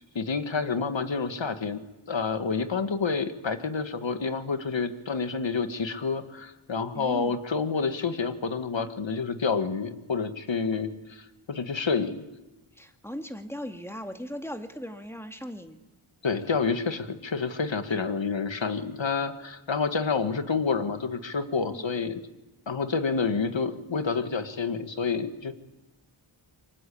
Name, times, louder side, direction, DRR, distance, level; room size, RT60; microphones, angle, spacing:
voice 1, 0.2-1.8 2.1-12.2 16.2-22.2 22.7-25.5, left 5 dB, 60° left, 9 dB, 1.9 m, -28 dB
voice 2, 6.9-7.4 12.7-15.8 21.7-21.9, equal, 5° left, 6 dB, 2.3 m, -38 dB
27.5 x 24.0 x 8.6 m, 1.1 s
wide cardioid pair, 75°, 49 cm